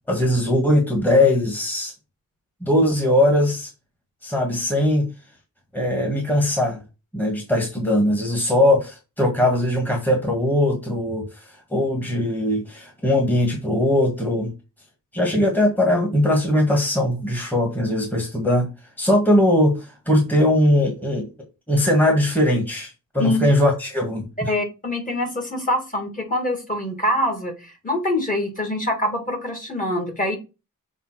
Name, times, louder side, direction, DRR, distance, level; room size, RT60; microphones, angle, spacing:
voice 1, 0.1-1.9 2.6-3.7 4.2-5.1 5.7-6.8 7.1-14.5 15.1-18.7 19.0-21.3 21.7-24.5, left 1 dB, 5° left, 1 dB, 1.8 m, -20 dB
voice 2, 24.5-30.4, left 1 dB, 25° left, 3 dB, 2.3 m, -24 dB
7.1 x 3.6 x 5.8 m, 0.28 s
wide cardioid pair, 135°, 34 cm